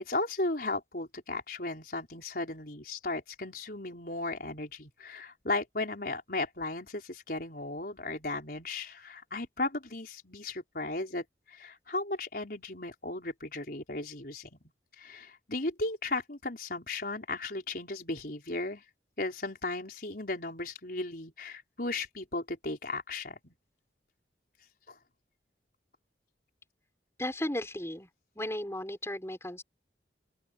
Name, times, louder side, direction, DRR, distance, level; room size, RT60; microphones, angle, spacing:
voice 1, 0.0-14.6 15.0-18.8 19.2-23.5 24.9-25.0, left 2 dB, 55° left, 5.3 m, -36 dB
voice 2, 27.2-28.1 28.4-29.6, left 1 dB, 15° left, 6.0 m, -35 dB
open air
head